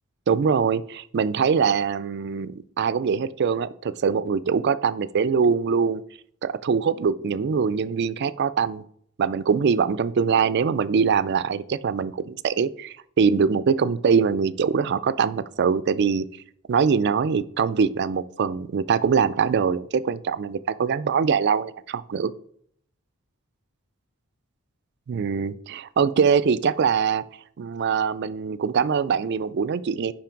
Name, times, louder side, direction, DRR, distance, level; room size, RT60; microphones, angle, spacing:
voice 1, 0.3-6.0 6.4-8.8 9.2-16.3 16.7-22.3 25.1-27.2 27.6-30.1, right 6 dB, 50° right, 16 dB, 0.3 m, -23 dB
5.7 x 5.2 x 5.1 m, 0.65 s
head